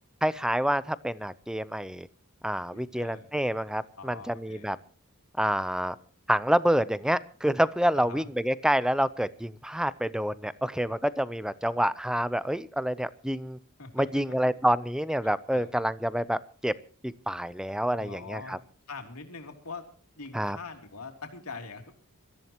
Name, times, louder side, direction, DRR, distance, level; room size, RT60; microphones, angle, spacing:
voice 1, 0.2-2.1 2.4-4.8 5.4-6.0 6.3-13.6 13.9-16.7 17.0-18.6 20.3-20.6, equal, 5° right, 0.6 m, -28 dB
voice 2, 2.6-3.3 4.0-4.7 7.9-8.3 13.8-14.5 15.2-15.7 17.9-18.6 18.9-19.9 20.1-21.9, left 4 dB, 75° left, 3.2 m, -43 dB
25.5 x 14.0 x 3.0 m
head